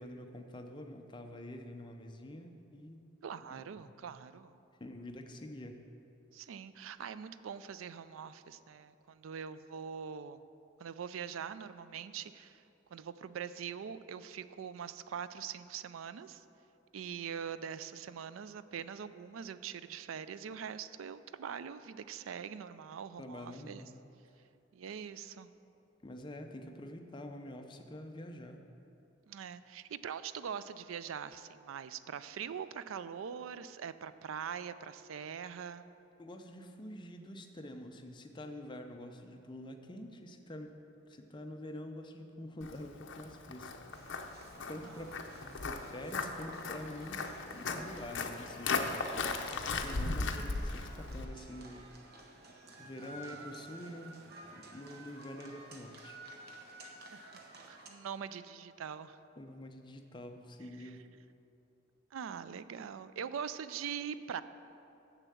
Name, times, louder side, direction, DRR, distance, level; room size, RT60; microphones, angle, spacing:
voice 1, 0.0-3.1 3.4-3.9 4.8-5.9 23.2-24.0 26.0-28.6 36.2-40.7 41.1-43.9 44.7-49.0 49.4-51.9 52.8-56.2 59.4-61.1, left 1 dB, 25° left, 5 dB, 0.6 m, -47 dB
voice 2, 3.2-4.6 6.3-10.4 10.8-12.6 12.9-16.4 16.9-23.8 24.7-25.5 29.3-35.9 44.8-45.1 49.9-50.0 56.8-57.3 57.7-59.2 60.8-60.9 62.1-64.4, right 7 dB, 85° right, 14 dB, 0.4 m, -43 dB
Walk footsteps, 42.6-51.3, left 3 dB, 60° left, 0.6 m, -37 dB
sound 1, 43.9-57.9, right 2 dB, 50° right, 0.9 m, -53 dB
7.4 x 6.8 x 7.0 m, 2.7 s
head